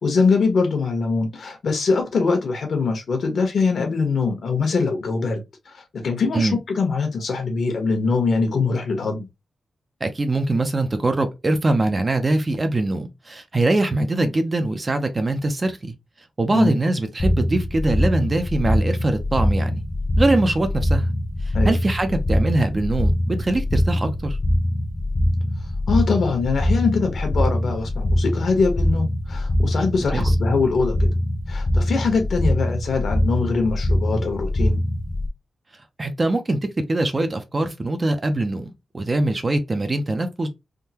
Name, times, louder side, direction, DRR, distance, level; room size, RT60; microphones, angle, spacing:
voice 1, 0.0-5.4 5.7-9.3 16.5-16.8 21.5-21.8 25.9-31.0 31.5-34.8, left 4 dB, 60° left, 1.1 m, -22 dB
voice 2, 10.0-15.9 16.4-19.8 20.2-21.1 21.5-24.4 30.1-30.3 36.0-36.6 36.9-40.5, right 2 dB, 25° right, 0.5 m, -22 dB
sound 1, 17.2-35.3, left 1 dB, 30° left, 0.6 m, -23 dB
3.6 x 2.2 x 2.8 m
wide cardioid pair, 135°, 0 cm